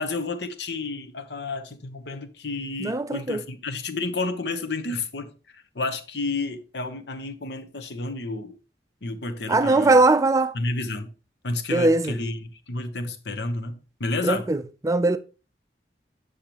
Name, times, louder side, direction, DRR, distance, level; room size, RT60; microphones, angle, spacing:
voice 1, 0.0-8.5 9.0-10.0 10.5-11.1 11.4-14.5, left 3 dB, 70° left, 0.9 m, -31 dB
voice 2, 2.8-3.4 9.5-10.5 11.7-12.2 14.2-15.2, right 2 dB, 15° right, 0.4 m, -20 dB
8.5 x 6.4 x 2.9 m
head